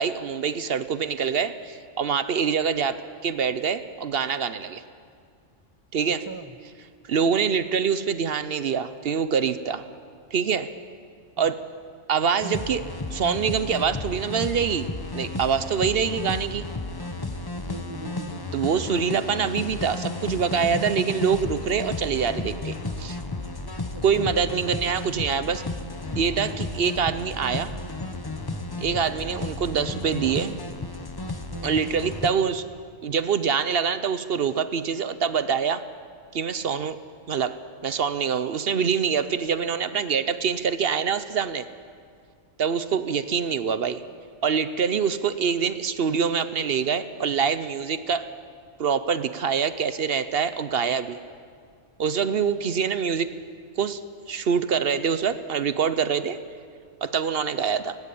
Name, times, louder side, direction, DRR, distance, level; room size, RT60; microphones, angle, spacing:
voice 1, 0.0-3.0 3.2-4.8 5.9-6.2 7.1-9.8 10.3-10.7 11.4-11.5 12.1-12.8 13.1-14.9 15.1-16.7 18.5-23.2 24.0-25.6 26.2-27.7 28.8-30.6 31.6-32.6 33.0-35.8 36.3-37.0 37.3-37.6 37.8-41.7 42.6-44.0 44.4-48.3 48.8-51.2 52.0-53.3 53.8-54.0 54.3-56.4 57.0-58.0, right 6 dB, 55° right, 13 dB, 0.9 m, -25 dB
voice 2, 6.0-6.6 11.4-11.5 17.6-18.6 23.9-24.3 28.8-29.0 31.5-31.8 52.8-52.9, right 3 dB, 25° right, 12 dB, 0.5 m, -41 dB
sound 1, 12.4-32.3, left 2 dB, 20° left, 0.8 m, -33 dB
18.5 x 16.5 x 8.5 m, 2.2 s
omnidirectional pair, 1.3 m